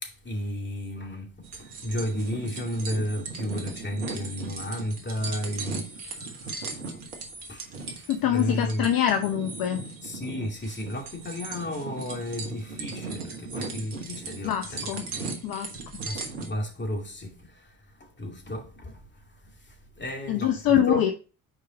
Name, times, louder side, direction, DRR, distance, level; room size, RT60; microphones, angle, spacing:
voice 1, 0.0-6.7 6.9-7.1 7.5-8.9 10.0-15.2 16.0-19.0 19.4-21.0, equal, 25° left, 2.4 m, -33 dB
sound 1, 1.4-16.5, right 4 dB, 80° right, 1.4 m, -37 dB
voice 2, 8.1-9.8 14.4-15.1 15.4-15.7 20.3-21.1, left 10 dB, 50° left, 0.9 m, -24 dB
6.6 x 4.7 x 4.0 m
hypercardioid pair, 55°, 44 cm